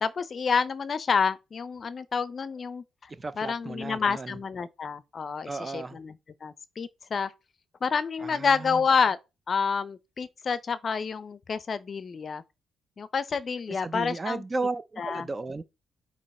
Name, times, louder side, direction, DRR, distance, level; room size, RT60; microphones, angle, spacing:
voice 1, 0.0-3.1 3.4-6.1 6.4-7.3 7.8-9.2 9.5-12.4 13.0-14.4 15.0-15.3, left 5 dB, 40° left, 0.6 m, -28 dB
voice 2, 3.1-4.4 5.5-6.0 8.2-8.8 13.7-15.6, right 3 dB, 25° right, 0.5 m, -34 dB
8.7 x 2.9 x 4.3 m
cardioid pair, 115°, 0 cm